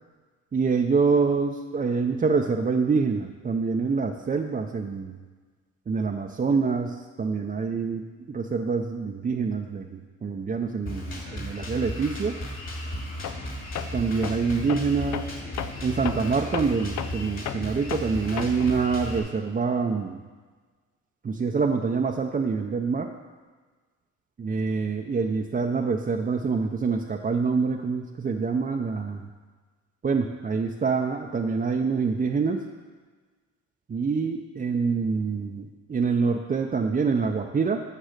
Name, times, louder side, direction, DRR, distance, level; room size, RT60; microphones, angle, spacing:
voice 1, 0.5-5.1 5.9-12.4 13.9-15.3 15.8-20.2 21.2-23.1 24.4-29.3 30.0-32.6 33.9-37.8, right 5 dB, 30° right, 1 dB, 0.6 m, -26 dB
Drum kit, 10.8-19.2, equal, 45° left, 2.7 m, -35 dB
Tools, 13.2-13.5 13.8-18.8, left 10 dB, 65° left, 0.6 m, -35 dB
9.0 x 6.2 x 6.6 m, 1.4 s
cardioid pair, 90°, 30 cm